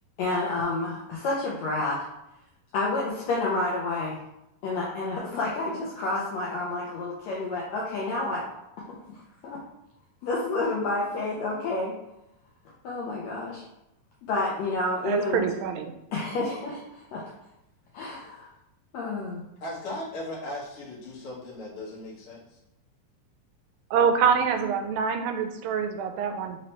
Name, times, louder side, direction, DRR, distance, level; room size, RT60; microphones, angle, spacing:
voice 1, 0.2-2.0 2.7-4.2 4.6-8.4 8.9-9.6 10.2-11.9 12.8-13.6 14.3-15.5 16.1-17.3 17.9-18.5 18.9-19.4, left 2 dB, 85° left, -4 dB, 1.5 m, -29 dB
voice 2, 15.0-15.9 23.9-26.6, right 6 dB, 85° right, 5 dB, 2.3 m, -25 dB
voice 3, 19.6-22.6, left 1 dB, 50° left, -7 dB, 1.8 m, -37 dB
5.5 x 3.1 x 2.9 m, 0.84 s
omnidirectional pair, 4.0 m